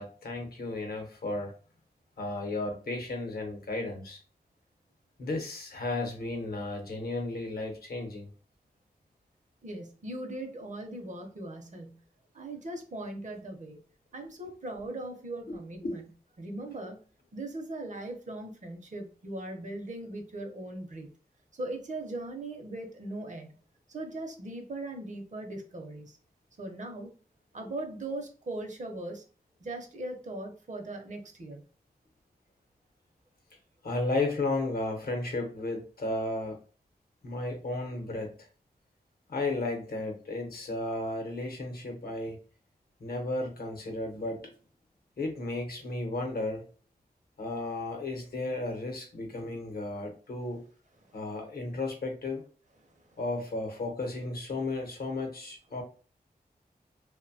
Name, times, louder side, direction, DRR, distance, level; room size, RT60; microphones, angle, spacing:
voice 1, 0.0-1.5 2.2-4.2 5.2-8.3 15.5-15.6 15.8-16.0 33.8-36.6 37.2-38.4 39.3-42.4 43.0-44.5 45.2-46.6 47.4-50.6 51.1-52.4 53.2-55.8, left 2 dB, 70° left, 3 dB, 0.8 m, -34 dB
voice 2, 9.6-12.0 12.3-13.8 14.1-16.1 16.4-17.0 17.3-21.1 21.5-23.5 23.9-26.2 26.6-27.1 27.5-29.2 29.6-31.6 51.0-51.2 53.0-53.2, right 2 dB, 50° right, 4 dB, 0.6 m, -39 dB
2.6 x 2.1 x 2.6 m, 0.39 s
wide cardioid pair, 95°, 16 cm